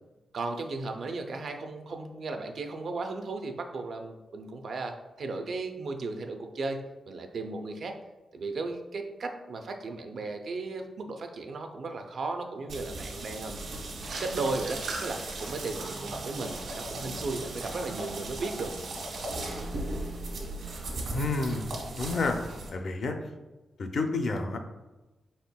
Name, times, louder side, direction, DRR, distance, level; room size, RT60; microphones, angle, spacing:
voice 1, 0.3-8.0 8.3-13.6 14.2-18.7, right 3 dB, 55° right, 5 dB, 0.4 m, -35 dB
sound 1, 12.7-22.7, right 2 dB, 70° right, 1.2 m, -37 dB
sound 2, 13.9-19.6 19.8-20.2, right 3 dB, 85° right, 1.3 m, -43 dB
voice 2, 21.1-21.7 21.9-22.4 22.7-23.1 23.8-24.6, left 3 dB, 50° left, 5 dB, 0.5 m, -29 dB
5.4 x 4.2 x 2.2 m, 1.1 s
wide cardioid pair, 170°, 0 cm